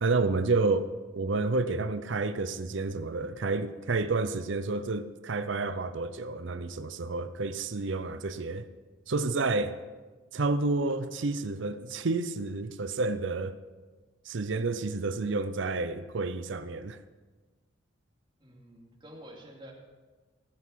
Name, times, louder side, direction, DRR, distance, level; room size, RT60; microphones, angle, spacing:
voice 1, 0.0-0.9 1.2-8.7 9.1-9.8 10.3-13.6 14.3-17.0, right 3 dB, 65° right, 0.6 m, -30 dB
voice 2, 18.4-19.7, equal, 25° right, 2.5 m, -49 dB
18.0 x 8.2 x 5.7 m
head